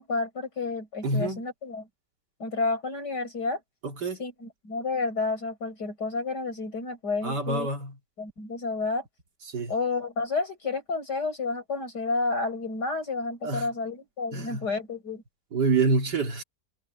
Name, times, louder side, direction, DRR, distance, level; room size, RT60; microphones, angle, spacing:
voice 1, 0.0-1.9 2.4-3.6 4.2-7.7 8.2-9.0 9.7-15.2, left 3 dB, 75° left, 6.7 m, -30 dB
voice 2, 1.0-1.4 3.8-4.2 7.2-7.9 9.5-9.7 13.4-13.7 14.3-14.7 15.5-16.4, right 3 dB, 80° right, 3.1 m, -26 dB
omnidirectional pair, 1.8 m